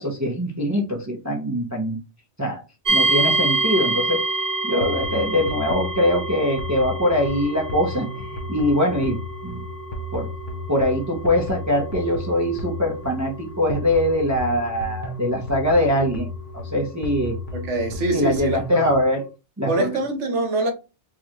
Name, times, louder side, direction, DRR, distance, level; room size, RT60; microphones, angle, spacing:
voice 1, 0.0-2.0 2.4-2.6 2.9-4.2 4.6-9.6 10.1-10.3 10.7-16.3 16.5-17.4 18.1-19.2 19.6-20.0, left 1 dB, 20° right, 0.6 m, -22 dB
sound 1, 2.8-17.7, right 3 dB, 35° right, 1.0 m, -28 dB
sound 2, 4.8-19.0, left 2 dB, 50° left, 0.8 m, -34 dB
voice 2, 17.5-18.9 19.7-20.7, right 2 dB, 75° right, 1.2 m, -24 dB
4.8 x 2.4 x 2.9 m
omnidirectional pair, 1.2 m